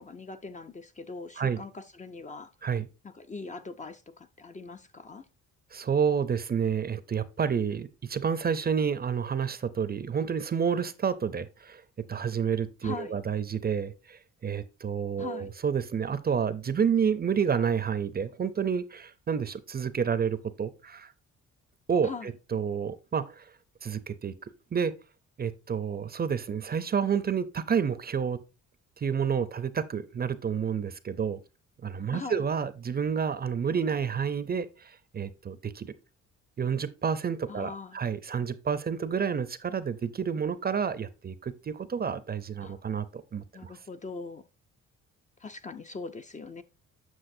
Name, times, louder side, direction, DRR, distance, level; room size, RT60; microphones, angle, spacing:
voice 1, 0.0-2.5 3.0-5.3 12.8-13.2 15.2-15.5 22.0-22.3 32.1-32.4 37.5-38.0 42.6-42.8 43.5-44.4 45.4-46.6, left 4 dB, 25° left, 0.5 m, -41 dB
voice 2, 5.7-11.8 12.1-21.1 21.9-23.5 23.8-24.3 24.7-24.9 25.4-28.4 29.0-31.4 31.8-35.9 36.6-43.7, right 7 dB, 30° right, 0.6 m, -29 dB
7.8 x 6.1 x 2.6 m
cardioid pair, 90°, 30 cm